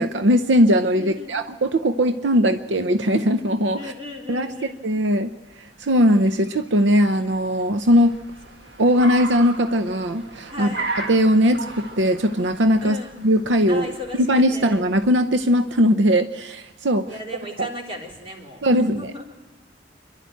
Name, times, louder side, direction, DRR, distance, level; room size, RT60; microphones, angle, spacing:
voice 1, 0.0-3.9 4.3-4.5 4.8-5.3 5.8-8.2 8.8-10.7 11.1-13.9 14.2-17.1 18.6-19.1, equal, 85° right, 9 dB, 0.8 m, -19 dB
voice 2, 0.9-1.4 3.7-4.9 10.4-10.9 12.8-13.2 13.7-14.8 17.0-19.3, left 1 dB, 30° right, -1 dB, 3.8 m, -36 dB
Car, 5.4-15.7, right 3 dB, 70° right, 1.8 m, -37 dB
27.5 x 11.5 x 9.2 m, 1.2 s
head